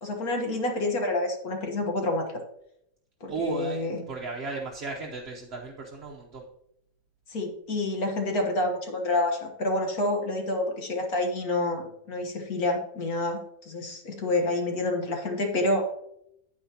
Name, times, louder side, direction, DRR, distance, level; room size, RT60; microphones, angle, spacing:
voice 1, 0.0-2.4 3.2-4.0 7.3-15.9, left 2 dB, 60° left, 2 dB, 1.8 m, -28 dB
voice 2, 3.3-6.4, right 3 dB, 45° right, 0 dB, 0.9 m, -35 dB
9.3 x 9.1 x 2.9 m, 0.77 s
omnidirectional pair, 1.8 m